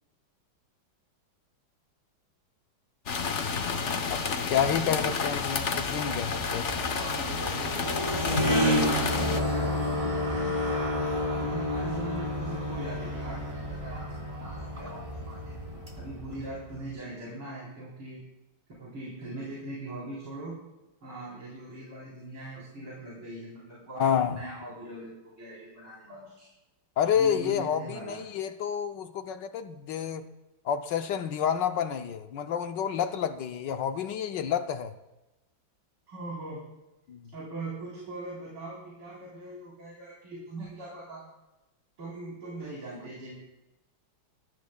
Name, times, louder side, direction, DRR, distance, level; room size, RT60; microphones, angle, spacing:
sound 1, 3.1-9.4, left 5 dB, 45° left, 1.0 m, -30 dB
voice 1, 4.1-6.7 24.0-24.4 27.0-30.3 30.6-35.0 37.1-37.3, left 8 dB, 70° left, 1.3 m, -29 dB
sound 2, 5.7-16.8, left 1 dB, 15° right, 3.9 m, -31 dB
voice 2, 6.8-7.9 8.3-10.5 11.4-15.6 16.0-18.2 18.8-20.6 21.0-26.5 27.1-28.2 36.1-36.6 37.3-41.2 42.0-43.3, right 2 dB, 80° right, 4.7 m, -41 dB
22.0 x 13.5 x 2.3 m
omnidirectional pair, 2.2 m